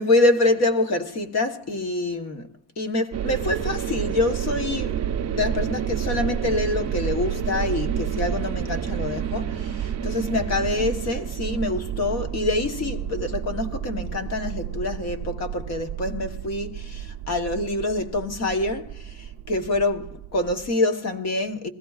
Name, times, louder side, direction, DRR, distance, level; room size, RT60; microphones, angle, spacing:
voice 1, 0.0-2.5 2.8-5.0 5.3-21.7, left 2 dB, 35° left, 1.1 m, -26 dB
sound 1, 3.1-20.7, right 9 dB, 35° right, 0.7 m, -30 dB
22.0 x 15.5 x 2.4 m
cardioid pair, 165°, 47 cm